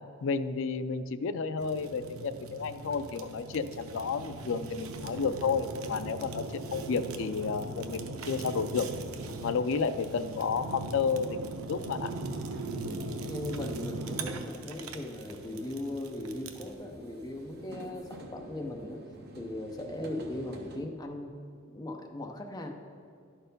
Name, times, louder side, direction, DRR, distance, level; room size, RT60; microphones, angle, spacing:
voice 1, 0.2-8.9 9.4-12.1, left 5 dB, 65° left, 11 dB, 0.4 m, -31 dB
Fire, 1.6-16.7, right 2 dB, 90° right, 0.7 m, -40 dB
sound 1, 8.7-20.8, right 1 dB, 50° right, 0.9 m, -52 dB
voice 2, 12.7-19.0 19.4-21.3 21.6-22.7, left 1 dB, 20° left, 2 dB, 0.6 m, -39 dB
11.0 x 4.5 x 5.2 m, 2.2 s
head